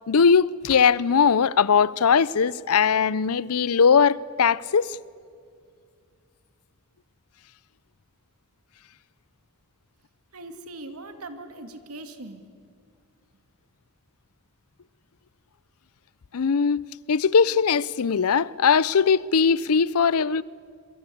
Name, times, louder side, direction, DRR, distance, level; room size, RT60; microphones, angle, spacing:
voice 1, 0.1-5.0 16.3-16.8 17.1-20.4, left 6 dB, 80° left, 0.6 m, -20 dB
voice 2, 10.3-12.4, right 2 dB, 80° right, 2.3 m, -40 dB
27.0 x 23.0 x 8.5 m
head